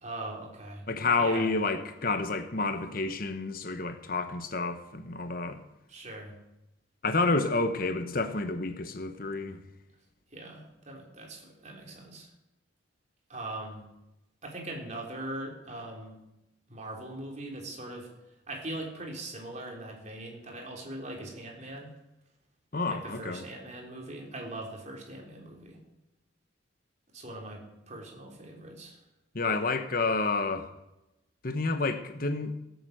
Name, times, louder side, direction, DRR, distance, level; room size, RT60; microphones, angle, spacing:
voice 1, 0.0-0.8 1.2-1.5 5.9-6.3 10.3-12.3 13.3-13.8 14.4-16.2 16.7-18.1 18.5-21.9 22.9-25.8 27.1-29.0, right 1 dB, 40° right, 3.6 m, -41 dB
voice 2, 0.9-5.6 7.0-9.6 22.7-23.4 29.3-30.7 31.4-32.5, left 3 dB, 50° left, 1.1 m, -29 dB
17.0 x 8.1 x 8.0 m
head